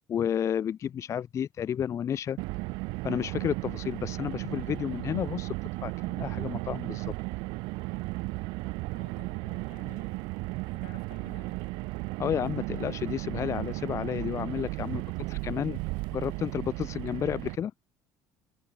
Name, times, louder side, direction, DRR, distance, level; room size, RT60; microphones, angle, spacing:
voice 1, 0.1-2.4 3.0-5.5 5.8-7.1 12.2-15.0 15.3-15.8 16.1-17.7, left 9 dB, 40° left, 0.4 m, -31 dB
Car, 2.4-17.6, right 25 dB, 80° right, 1.3 m, -35 dB
voice 2, 8.9-10.4 10.6-11.8 14.9-15.5, left 29 dB, 85° left, 7.2 m, -55 dB
supercardioid pair, 100°, 8 cm